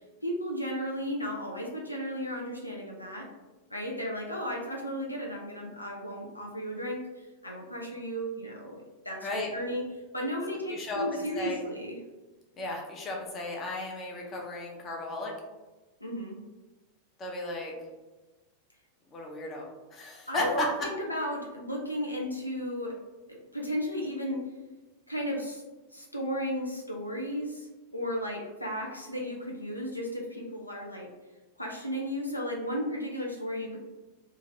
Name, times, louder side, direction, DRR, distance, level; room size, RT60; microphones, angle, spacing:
voice 1, 0.2-3.3 3.7-9.8 10.1-12.0 16.0-16.4 20.3-22.9 23.3-24.4 25.1-25.6 25.9-31.1 31.6-33.8, equal, 85° left, -1 dB, 0.5 m, -34 dB
voice 2, 9.2-9.5 10.7-11.6 12.6-15.3 17.2-17.7 19.1-20.7, left 2 dB, 25° left, -1 dB, 0.6 m, -35 dB
2.8 x 2.5 x 2.7 m, 1.1 s
figure-of-eight pair, 90°, 0 cm